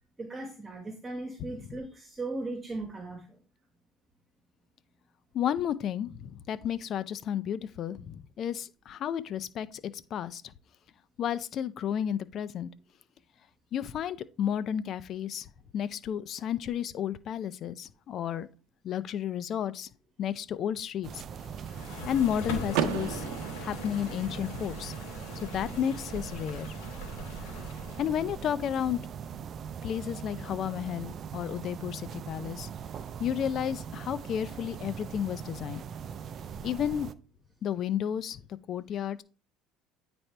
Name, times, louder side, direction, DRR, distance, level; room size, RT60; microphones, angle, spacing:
voice 1, 0.2-3.4, right 2 dB, 20° right, 1.5 m, -38 dB
voice 2, 5.3-9.8 10.1-10.4 11.2-12.7 13.7-18.5 18.8-19.9 20.2-21.2 22.1-23.3 23.6-24.9 25.4-26.7 28.0-29.0 29.8-32.7 33.2-35.8 36.6-37.1 37.6-38.4 38.7-39.2, left 9 dB, 50° left, 0.5 m, -32 dB
sound 1, 21.0-37.1, right 7 dB, 45° right, 0.5 m, -41 dB
sound 2, 21.4-28.4, left 3 dB, 85° left, 2.3 m, -42 dB
Car / Door, 22.7-24.7, right 9 dB, 80° right, 0.7 m, -33 dB
9.1 x 4.3 x 3.4 m
supercardioid pair, 110°, 0 cm